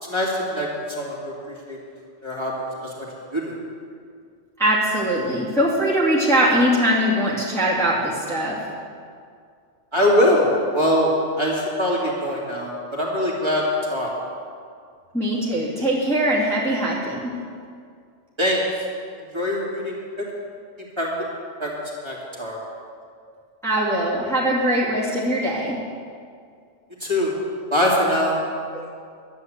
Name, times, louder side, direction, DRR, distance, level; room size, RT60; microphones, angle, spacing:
voice 1, 0.0-0.7 1.0-1.3 1.7-1.8 2.2-2.5 2.8-2.9 3.3-3.5 9.9-10.5 10.7-14.1 18.4-18.6 19.3-20.0 21.0-21.1 21.6-21.7 22.0-22.6 27.0-27.3 27.7-28.4, left 1 dB, 20° right, -5 dB, 2.8 m, -22 dB
voice 2, 4.6-8.7 15.1-17.3 23.6-25.8 28.7-28.9, right 1 dB, ahead, -8 dB, 2.3 m, -21 dB
12.0 x 9.5 x 8.0 m, 2.2 s
omnidirectional pair, 1.2 m